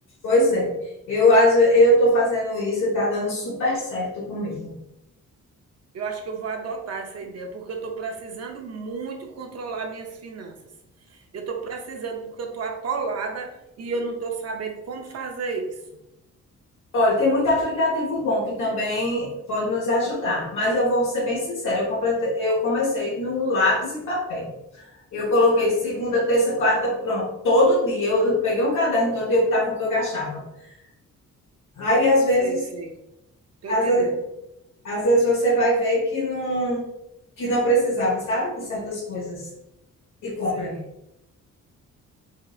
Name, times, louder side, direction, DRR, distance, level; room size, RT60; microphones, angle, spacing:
voice 1, 0.2-0.7 1.1-4.7 16.9-24.8 25.1-30.4 31.8-32.6 33.7-34.1 34.8-36.8 37.4-39.4 40.2-40.7, left 1 dB, 75° left, -6 dB, 1.4 m, -22 dB
voice 2, 5.9-10.6 11.3-13.5 13.8-15.7 32.4-32.9 33.6-34.2 40.5-40.8, right 4 dB, 55° right, 3 dB, 0.7 m, -32 dB
4.6 x 3.3 x 2.4 m, 0.86 s
wide cardioid pair, 160°, 31 cm